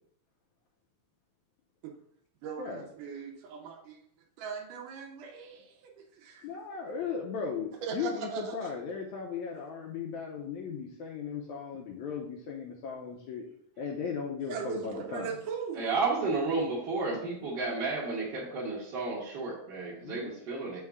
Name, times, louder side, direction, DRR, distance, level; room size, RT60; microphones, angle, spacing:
voice 1, 2.4-4.0 4.4-6.5 7.8-8.7 14.5-15.9, right 6 dB, 85° right, 1 dB, 2.4 m, -39 dB
voice 2, 6.4-13.4 13.8-15.4 18.4-18.5 20.0-20.3, left 6 dB, 75° left, -2 dB, 2.0 m, -37 dB
voice 3, 15.7-20.8, right 3 dB, 50° right, -6 dB, 1.4 m, -32 dB
6.6 x 5.6 x 3.6 m, 0.68 s
omnidirectional pair, 3.6 m